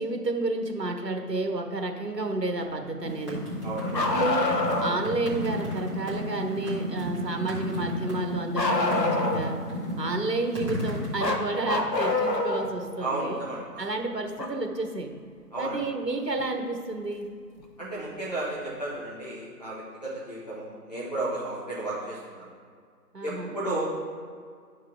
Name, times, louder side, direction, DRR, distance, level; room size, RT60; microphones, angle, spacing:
voice 1, 0.0-3.4 3.9-4.5 4.8-9.6 10.0-13.4 13.8-15.1 15.6-17.3 23.1-23.6, right 2 dB, 75° right, 4 dB, 1.2 m, -31 dB
sound 1, 3.0-11.2, equal, 20° right, 1.2 m, -32 dB
voice 2, 3.6-4.0 13.0-13.8 15.5-15.8 17.8-22.5 23.2-23.9, right 2 dB, 25° left, -9 dB, 0.8 m, -33 dB
Bark, 3.9-5.0 8.6-9.6 11.2-12.7 14.4-14.5 16.4-16.5 17.6-17.7, left 2 dB, 80° left, 1.1 m, -26 dB
11.0 x 4.7 x 3.7 m, 2.1 s
figure-of-eight pair, 155°, 49 cm